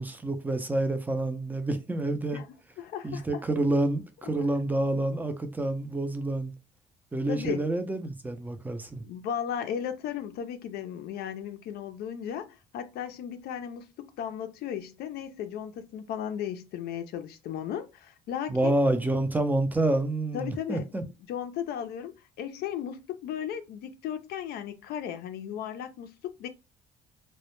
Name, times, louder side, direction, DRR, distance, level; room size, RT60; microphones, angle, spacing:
voice 1, 0.0-2.4 3.0-6.5 7.1-9.0 18.5-21.0, right 2 dB, 10° right, 0.4 m, -28 dB
voice 2, 2.8-3.3 4.2-4.5 7.3-7.7 9.0-18.8 20.3-20.8 21.3-26.5, left 9 dB, 70° left, 0.4 m, -35 dB
2.1 x 2.0 x 2.9 m
cardioid pair, 110°, 17 cm